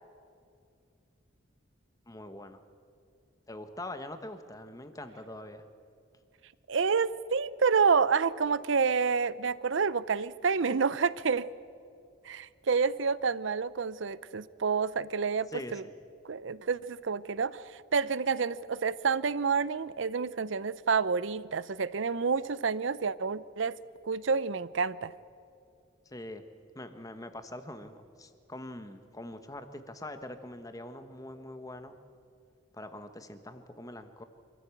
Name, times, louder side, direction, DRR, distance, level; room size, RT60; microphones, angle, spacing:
voice 1, 2.1-2.6 3.5-5.6 15.5-15.8 26.0-26.5 26.7-32.0 32.7-34.2, left 1 dB, 15° left, 9 dB, 1.1 m, -43 dB
voice 2, 6.7-11.5 12.2-15.8 16.2-23.8 24.0-25.1, right 5 dB, 65° right, 18 dB, 0.6 m, -29 dB
25.5 x 14.5 x 8.4 m, 2.4 s
head